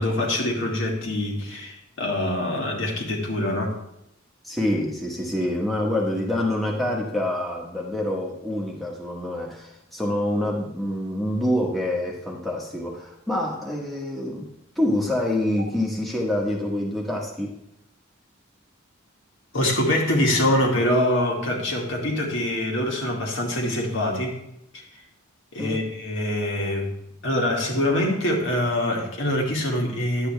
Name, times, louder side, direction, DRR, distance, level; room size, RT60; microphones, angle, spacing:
voice 1, 0.0-3.8 19.5-24.4 24.7-24.8 25.5-26.9 27.2-30.3, left 1 dB, 60° left, -1 dB, 2.2 m, -24 dB
voice 2, 4.4-14.5 14.7-17.5 25.6-25.8, left 1 dB, ahead, -3 dB, 1.3 m, -26 dB
11.0 x 8.6 x 3.4 m, 0.82 s
head